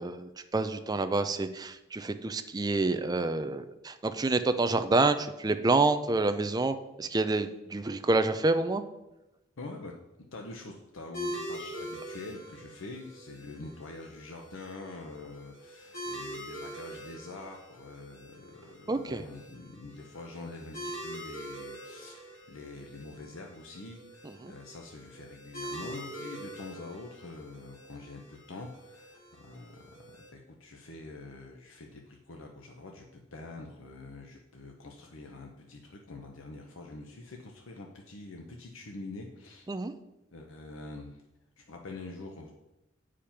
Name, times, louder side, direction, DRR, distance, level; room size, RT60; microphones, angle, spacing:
voice 1, 0.0-8.8 18.9-19.2 24.4-24.5 39.7-39.9, right 3 dB, 20° right, 9 dB, 0.5 m, -28 dB
voice 2, 9.6-10.0 10.3-39.7 40.3-41.2 41.6-42.5, left 2 dB, 90° left, 1 dB, 0.9 m, -45 dB
sound 1, 11.1-30.3, equal, 65° left, 3.4 m, -44 dB
8.6 x 5.0 x 5.8 m, 0.95 s
head